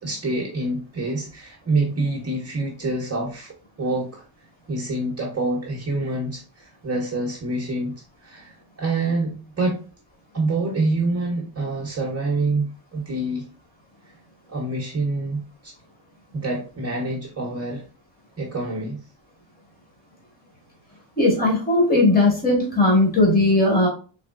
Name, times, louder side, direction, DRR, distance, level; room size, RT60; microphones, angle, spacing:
voice 1, 0.0-4.2 4.7-7.9 8.2-9.8 10.3-13.5 14.1-14.2 14.5-15.7 16.3-17.8 18.4-19.0, right 2 dB, 30° right, -2 dB, 0.9 m, -26 dB
voice 2, 21.2-23.9, left 2 dB, 20° left, -3 dB, 1.7 m, -18 dB
3.7 x 3.1 x 2.4 m, 0.37 s
cardioid pair, 110°, 49 cm